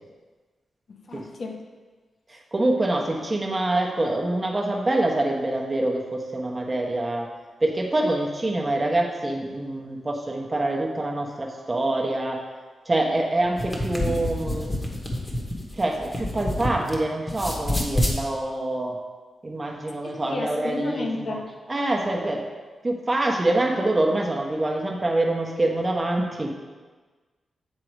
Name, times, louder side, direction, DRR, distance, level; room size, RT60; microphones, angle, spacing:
voice 1, 0.9-1.6 20.0-21.5, left 2 dB, 55° left, 2 dB, 0.8 m, -32 dB
voice 2, 2.3-7.3 7.6-12.4 12.8-14.7 15.7-19.0 19.4-21.4 21.7-22.4 22.8-26.5, right 2 dB, 25° right, 0 dB, 1.0 m, -25 dB
sound 1, 13.4-17.0 17.3-18.2, left 1 dB, 25° left, 1.1 m, -27 dB
7.5 x 3.8 x 4.7 m, 1.4 s
cardioid pair, 90°, 0 cm